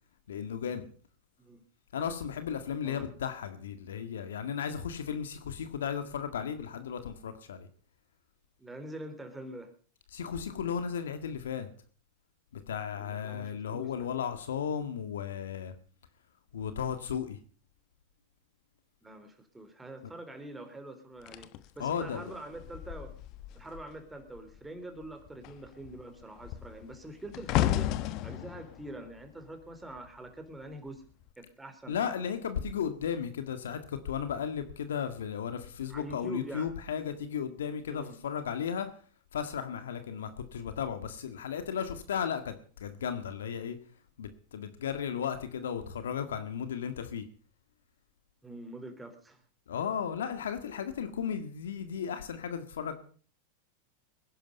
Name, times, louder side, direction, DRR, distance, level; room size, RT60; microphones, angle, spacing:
voice 1, 0.3-0.8 1.9-7.7 10.1-11.7 12.5-15.7 16.5-17.4 21.8-22.2 31.9-38.9 39.3-43.8 44.2-47.2 49.7-53.0, left 7 dB, 85° left, 9 dB, 1.8 m, -35 dB
voice 2, 8.6-9.7 12.9-14.1 19.0-23.1 23.5-28.0 28.2-31.0 31.4-32.0 35.9-36.7 37.9-38.2 48.4-49.4 50.7-50.9, right 1 dB, 10° right, 7 dB, 3.5 m, -45 dB
sound 1, 21.3-24.0 24.3-24.6 25.0-30.3 31.0-31.3, left 13 dB, 50° left, 1.1 m, -34 dB
21.0 x 11.0 x 5.4 m, 0.43 s
hypercardioid pair, 110°, 0 cm